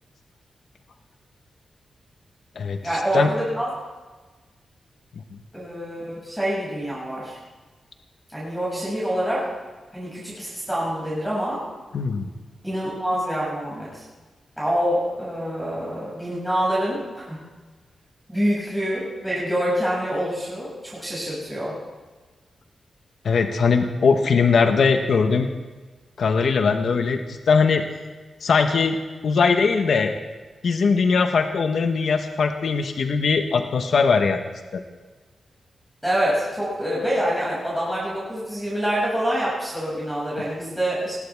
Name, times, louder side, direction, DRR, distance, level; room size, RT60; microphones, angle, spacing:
voice 1, 2.8-3.7 5.5-7.4 8.3-9.5 9.9-11.6 12.6-14.0 14.6-17.4 18.3-21.7 36.0-41.1, equal, 5° right, -8 dB, 6.4 m, -26 dB
voice 2, 11.9-12.3 23.2-25.5 26.2-27.8 28.4-29.0 29.2-30.1 30.6-34.4 34.7-34.8, left 5 dB, 70° left, 6 dB, 1.1 m, -20 dB
20.0 x 15.5 x 3.5 m, 1.3 s
wide cardioid pair, 105°, 0 cm